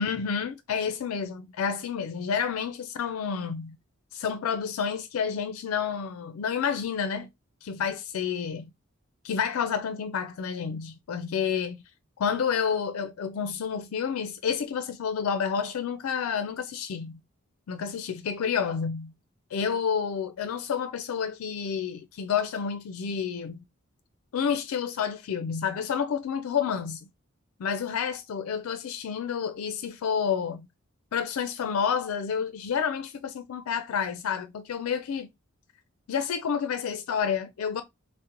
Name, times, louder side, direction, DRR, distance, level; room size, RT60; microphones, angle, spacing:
voice 1, 0.0-3.8 4.1-7.3 7.6-8.7 9.2-11.8 12.2-17.2 17.7-19.1 19.5-23.6 24.3-27.1 27.6-30.7 31.1-35.3 36.1-37.8, left 7 dB, 85° left, 0.4 m, -29 dB
3.7 x 2.0 x 2.8 m
head